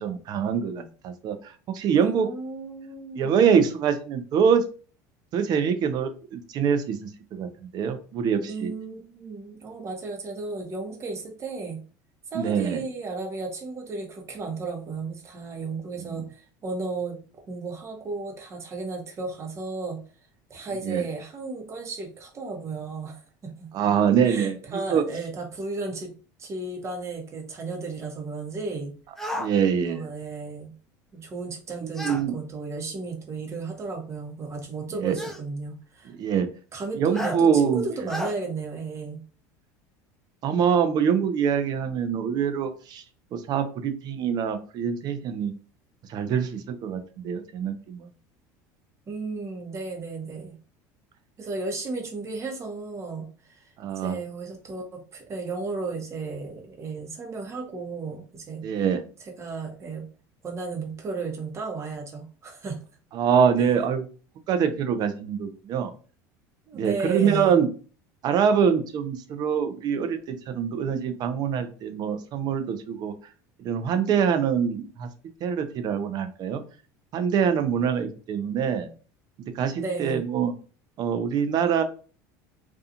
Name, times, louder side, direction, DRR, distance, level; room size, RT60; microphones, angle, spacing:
voice 1, 0.0-2.3 3.1-4.6 5.3-7.5 7.7-8.7 12.3-12.8 16.1-16.2 20.8-21.0 23.7-25.0 29.4-30.1 31.8-32.4 35.0-35.2 36.2-36.5 37.0-37.8 40.4-43.0 43.3-45.5 46.1-48.1 53.8-54.2 58.6-59.0 63.1-64.1 64.5-65.9 66.7-67.7 68.2-73.1 73.6-75.1 75.4-76.6 77.1-78.9 79.5-80.5 81.0-81.8, right 7 dB, 45° right, 9 dB, 0.5 m, -24 dB
voice 2, 2.0-3.4 8.4-11.8 12.3-17.2 17.5-20.0 20.5-23.7 24.2-26.1 26.4-28.9 29.8-30.7 31.1-36.1 36.7-39.2 49.1-50.6 51.4-53.6 54.0-58.6 59.4-60.1 60.4-62.8 66.7-67.6 79.8-80.3, right 3 dB, 30° right, 2 dB, 0.9 m, -34 dB
sound 1, 29.2-29.5 31.9-32.2 33.5-33.6 35.2-35.4 37.1-37.4 38.1-38.3, equal, 5° left, 0.5 m, -32 dB
2.5 x 2.3 x 2.7 m, 0.37 s
supercardioid pair, 105°, 9 cm